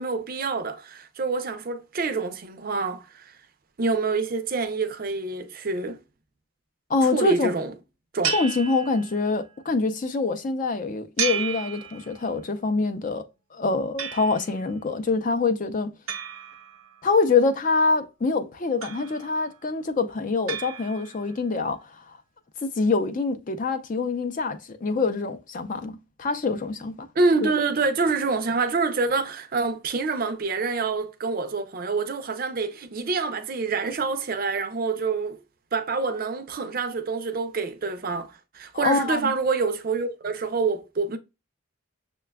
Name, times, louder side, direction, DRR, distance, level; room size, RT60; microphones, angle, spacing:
voice 1, 0.0-3.3 3.8-6.0 7.0-7.7 8.1-8.3 27.2-35.4 35.7-41.2, right 4 dB, 45° right, 0.5 m, -26 dB
voice 2, 6.9-7.5 8.3-13.3 13.5-15.9 17.0-22.2 22.8-27.1 27.4-27.5 38.7-39.3, left 3 dB, 35° left, 0.4 m, -25 dB
sound 1, 8.2-9.5 11.2-12.5 14.0-14.7 16.1-17.2 18.8-19.5 20.5-21.4, right 7 dB, 80° right, 0.7 m, -33 dB
6.6 x 2.2 x 2.2 m
head